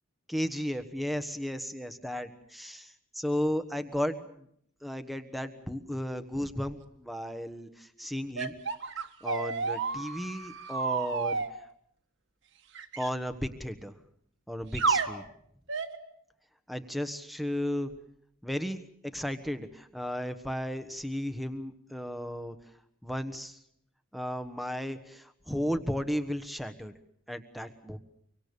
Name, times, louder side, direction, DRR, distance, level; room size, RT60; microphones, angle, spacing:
voice 1, 0.3-4.5 4.8-8.5 9.2-11.4 13.0-13.9 14.5-15.2 16.7-17.9 18.4-18.8 19.0-22.6 23.0-23.6 24.1-26.9 27.3-28.0, equal, ahead, 10 dB, 1.2 m, -34 dB
sound 1, 8.4-11.5 12.8-13.1 14.7-15.1 15.7-16.0, right 5 dB, 65° right, 1.6 m, -31 dB
24.5 x 24.5 x 6.9 m, 0.70 s
head